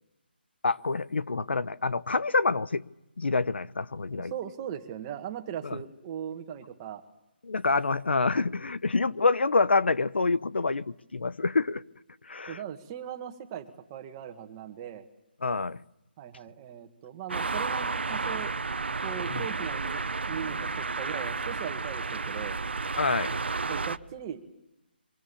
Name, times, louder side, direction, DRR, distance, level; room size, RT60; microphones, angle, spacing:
voice 1, 0.6-2.8 3.2-4.3 5.6-5.8 7.4-11.8 12.3-12.6 15.4-15.8 19.3-19.4 23.0-23.4, left 3 dB, 85° left, 0.9 m, -27 dB
voice 2, 4.1-7.0 12.5-15.1 16.2-18.5 19.0-22.6 23.7-24.4, right 9 dB, 20° right, 1.9 m, -39 dB
sound 1, 17.3-24.0, right 4 dB, 80° right, 1.1 m, -32 dB
25.5 x 24.0 x 7.1 m
hypercardioid pair, 165°, 6 cm